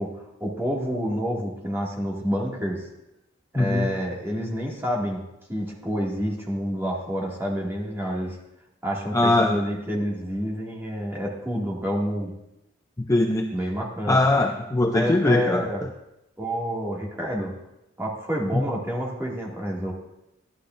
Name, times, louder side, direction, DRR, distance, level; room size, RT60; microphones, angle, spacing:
voice 1, 0.0-2.9 3.5-5.2 5.5-8.4 8.8-12.3 13.5-14.2 14.9-15.8 16.4-17.5 18.0-19.9, equal, 15° right, -3 dB, 2.2 m, -28 dB
voice 2, 3.6-3.9 9.1-9.5 13.1-13.5 14.1-15.6 18.5-18.6, left 2 dB, 15° left, 3 dB, 0.5 m, -21 dB
13.5 x 11.5 x 2.6 m, 0.86 s
head